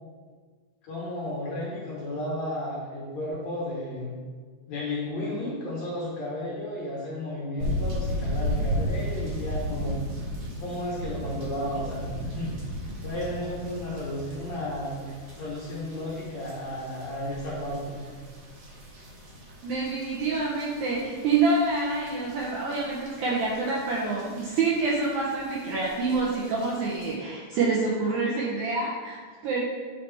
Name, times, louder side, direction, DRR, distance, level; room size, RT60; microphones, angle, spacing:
voice 1, 0.8-4.2 4.7-10.0 10.6-12.5 13.0-15.1 15.3-18.1, left 1 dB, 65° left, -6 dB, 1.8 m, -33 dB
sound 1, 7.6-27.1, equal, 60° right, 1.6 m, -36 dB
voice 2, 19.6-29.6, right 3 dB, 80° right, -4 dB, 1.8 m, -27 dB
9.0 x 4.1 x 3.3 m, 1.5 s
omnidirectional pair, 4.2 m